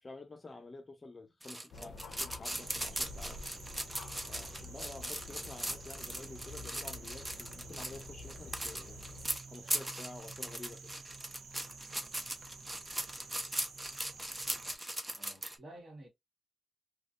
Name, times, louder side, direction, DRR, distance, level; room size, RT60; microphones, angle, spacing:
voice 1, 0.0-3.4 4.3-9.0 9.4-11.0, left 3 dB, 30° left, 0.6 m, -50 dB
sound 1, 1.4-15.6, right 1 dB, 15° right, 0.5 m, -39 dB
sound 2, 1.7-9.4, left 4 dB, 85° left, 0.4 m, -49 dB
voice 2, 1.7-2.2 15.1-16.1, right 1 dB, 55° right, 1.1 m, -52 dB
sound 3, 2.5-14.8, right 4 dB, 75° right, 0.6 m, -51 dB
2.6 x 2.2 x 2.3 m
wide cardioid pair, 105°, 0 cm